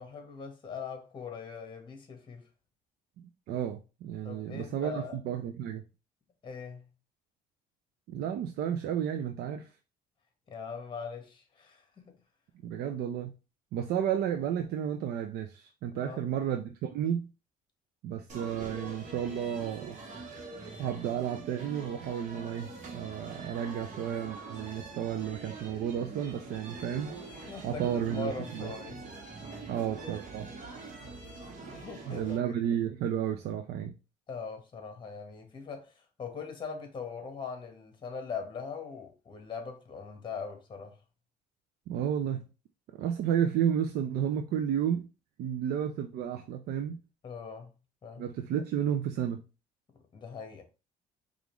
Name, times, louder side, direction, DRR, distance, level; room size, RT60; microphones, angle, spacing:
voice 1, 0.0-2.5 4.2-5.2 6.4-6.9 10.5-12.1 16.0-16.2 26.7-26.8 27.4-29.0 31.6-32.4 34.3-41.0 47.2-47.8 48.0-48.3 50.1-50.6, left 5 dB, 30° left, 1.1 m, -41 dB
voice 2, 3.2-5.8 8.1-9.7 12.6-13.3 13.7-17.3 18.0-20.0 20.8-27.1 27.6-28.7 29.7-30.5 32.1-34.0 41.9-42.5 43.0-45.1 45.4-47.0 48.2-49.4, right 9 dB, 70° right, 0.5 m, -32 dB
sound 1, 18.3-32.4, right 3 dB, 45° right, 1.3 m, -44 dB
5.0 x 2.5 x 3.0 m
cardioid pair, 110°, 17 cm